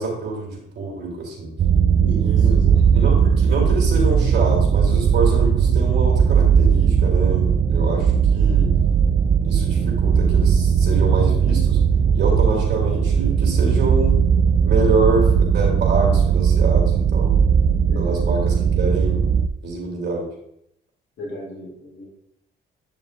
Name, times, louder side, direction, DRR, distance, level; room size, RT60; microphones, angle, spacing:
voice 1, 0.0-1.5 2.2-2.6 2.9-8.7 9.4-11.8 12.1-14.2 14.6-17.4 17.9-19.2 19.6-20.3, right 3 dB, 60° right, -1 dB, 3.1 m, -26 dB
sound 1, 1.6-19.5, right 7 dB, 40° right, 0.4 m, -18 dB
voice 2, 2.0-2.8 17.9-18.2 21.2-22.1, equal, 70° left, -4 dB, 2.6 m, -35 dB
8.7 x 7.0 x 2.5 m, 0.74 s
cardioid pair, 90°, 20 cm